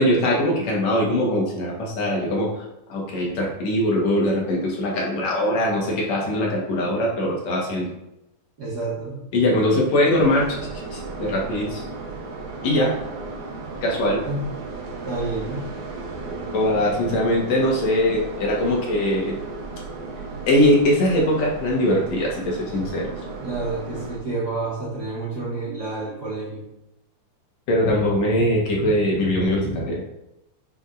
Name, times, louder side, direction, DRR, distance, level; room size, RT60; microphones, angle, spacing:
voice 1, 0.0-2.6 2.9-7.9 9.3-10.5 10.9-11.8 12.6-12.9 13.8-14.2 16.5-19.3 20.5-23.1 27.7-30.0, left 1 dB, 65° left, -3 dB, 2.5 m, -21 dB
voice 2, 8.6-9.3 14.2-14.7 15.0-15.8 23.4-26.6, right 2 dB, 40° right, -7 dB, 1.7 m, -29 dB
sound 1, 10.1-24.2, right 3 dB, 80° right, 2.4 m, -34 dB
8.7 x 4.4 x 2.5 m, 0.88 s
omnidirectional pair, 3.4 m